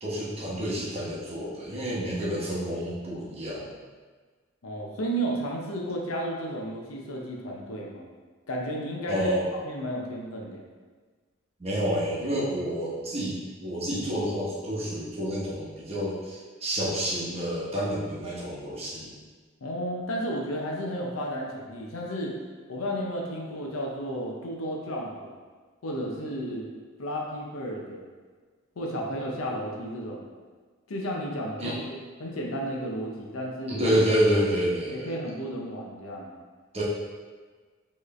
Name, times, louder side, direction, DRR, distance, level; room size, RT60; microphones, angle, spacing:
voice 1, 0.0-3.7 9.1-9.5 11.6-19.1 31.6-31.8 33.7-35.1 36.7-36.8, equal, 30° right, -6 dB, 1.0 m, -28 dB
voice 2, 4.6-8.0 8.5-10.6 19.6-22.4 22.7-25.4 25.8-26.7 27.0-28.1 28.8-30.3 30.9-31.7 32.2-33.8 34.9-36.3, equal, 80° left, -1 dB, 0.7 m, -33 dB
4.5 x 3.1 x 3.1 m, 1.4 s
head